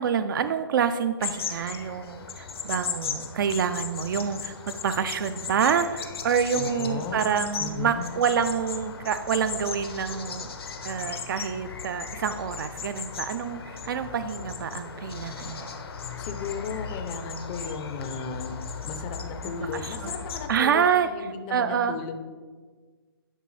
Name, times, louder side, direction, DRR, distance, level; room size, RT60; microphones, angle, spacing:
voice 1, 0.0-10.5 10.8-15.8 19.6-20.1 20.5-21.1 21.5-22.0, right 7 dB, 60° right, 10 dB, 0.4 m, -27 dB
sound 1, 1.2-20.5, left 6 dB, 85° left, 1.0 m, -36 dB
voice 2, 6.6-7.2 7.6-8.1 16.2-18.6 18.8-22.2, left 5 dB, 25° left, 7 dB, 0.4 m, -35 dB
11.0 x 4.5 x 3.2 m, 1.4 s
hypercardioid pair, 160°, 13 cm